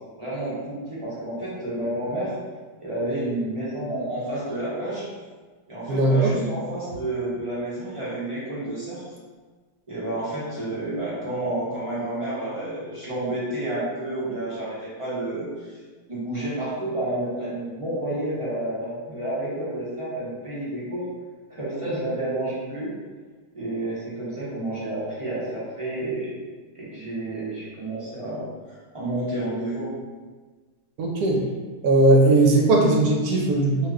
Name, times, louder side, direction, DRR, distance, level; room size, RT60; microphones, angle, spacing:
voice 1, 0.2-2.3 2.8-5.1 5.7-9.0 9.9-15.8 16.1-21.1 21.5-22.9 23.5-26.4 26.7-29.9, right 1 dB, 35° right, -9 dB, 0.5 m, -30 dB
voice 2, 5.9-6.3 31.0-31.4 31.8-33.9, right 2 dB, 75° right, 0 dB, 1.1 m, -18 dB
2.7 x 2.4 x 3.3 m, 1.4 s
omnidirectional pair, 1.7 m